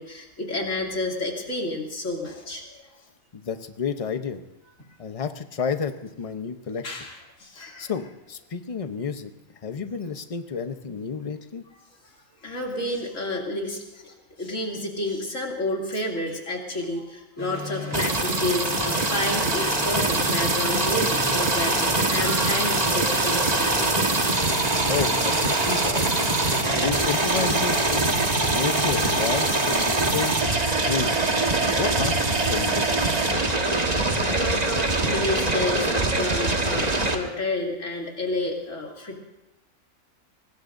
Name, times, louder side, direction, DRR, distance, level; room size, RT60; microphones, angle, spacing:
voice 1, 0.0-2.9 6.8-7.9 12.0-12.1 12.4-23.9 24.4-24.5 26.5-26.9 33.6-33.9 34.3-39.2, left 2 dB, 70° left, -1 dB, 3.1 m, -30 dB
voice 2, 3.3-4.4 5.0-7.0 7.8-9.3 9.6-11.6 24.6-26.1 26.7-28.0 28.5-30.4 30.8-31.2 31.8-33.1, left 6 dB, 30° left, 8 dB, 0.7 m, -31 dB
sound 1, 17.4-29.7, left 1 dB, 10° left, 3.7 m, -37 dB
sound 2, 17.9-37.1, right 2 dB, 30° right, 1.5 m, -23 dB
24.5 x 19.5 x 2.6 m, 0.99 s
omnidirectional pair, 1.4 m